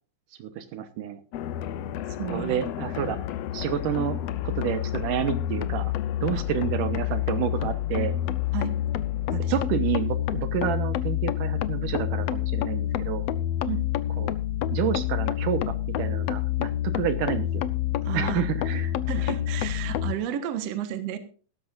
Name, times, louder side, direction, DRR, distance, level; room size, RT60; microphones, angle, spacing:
voice 1, 0.4-1.2 2.3-3.2 3.5-4.2 4.4-5.9 6.2-8.2 9.5-13.2 14.2-14.3 14.7-17.6 18.1-19.3, right 10 dB, 75° right, 10 dB, 2.6 m, -29 dB
sound 1, 1.3-20.2, left 11 dB, 85° left, 1.4 m, -28 dB
voice 2, 2.2-2.6 6.3-6.4 8.5-8.8 9.3-9.6 13.7-13.8 18.0-18.4 19.1-21.2, right 11 dB, 60° right, 9 dB, 2.2 m, -32 dB
17.0 x 13.0 x 2.5 m, 0.39 s
omnidirectional pair, 3.8 m